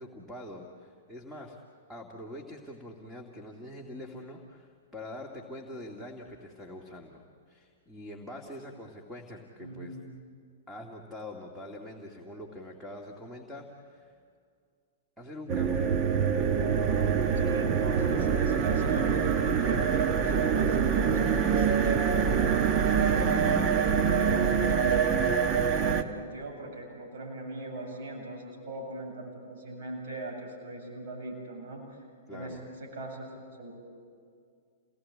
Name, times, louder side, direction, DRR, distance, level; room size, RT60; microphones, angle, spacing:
voice 1, 0.0-1.6 1.9-10.0 10.7-14.2 15.2-16.0 32.3-32.6, left 1 dB, ahead, 0 dB, 2.4 m, -44 dB
voice 2, 9.6-10.0 16.5-16.9 17.3-22.4 23.0-31.8 32.3-33.7, right 2 dB, 55° right, 0 dB, 7.7 m, -40 dB
sound 1, 15.5-26.0, right 7 dB, 30° right, 1.4 m, -25 dB
29.0 x 19.0 x 8.8 m, 2.2 s
figure-of-eight pair, 105°, 0 cm